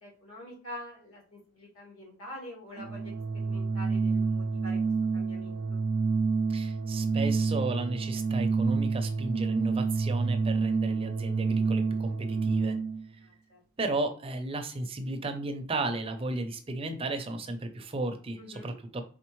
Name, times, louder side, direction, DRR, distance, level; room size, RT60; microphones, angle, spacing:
voice 1, 0.0-4.8 5.1-5.8 13.2-13.6 18.4-18.7, left 1 dB, 80° left, -4 dB, 2.3 m, -46 dB
Organ, 2.7-13.0, right 4 dB, 85° right, 0.5 m, -28 dB
voice 2, 6.5-12.8 13.8-19.0, right 2 dB, 25° right, 7 dB, 0.5 m, -34 dB
4.3 x 3.8 x 3.1 m, 0.43 s
head